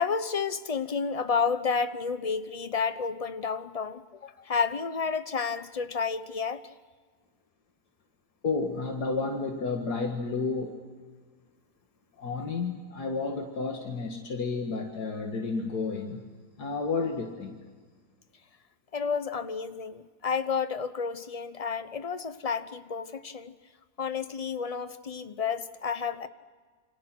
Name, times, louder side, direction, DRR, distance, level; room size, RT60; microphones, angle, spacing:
voice 1, 0.0-6.6 18.9-23.5 24.0-26.3, left 5 dB, 30° left, 12 dB, 0.8 m, -31 dB
voice 2, 8.4-10.8 12.2-16.3 16.6-17.6, left 4 dB, 85° left, 2 dB, 2.4 m, -31 dB
29.0 x 25.5 x 6.1 m, 1.5 s
omnidirectional pair, 1.7 m